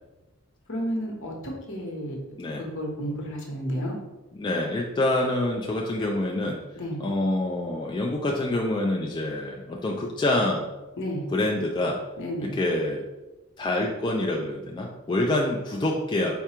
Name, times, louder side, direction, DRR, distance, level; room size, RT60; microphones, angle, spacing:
voice 1, 0.7-2.2 2.6-3.9 6.7-7.0 11.0-11.3 12.2-12.5, equal, 60° left, 0 dB, 1.0 m, -31 dB
voice 2, 4.3-6.6 7.0-10.7 11.3-12.0 12.4-13.0 13.6-16.4, left 1 dB, 20° left, -1 dB, 0.4 m, -26 dB
4.7 x 2.3 x 4.3 m, 1.1 s
head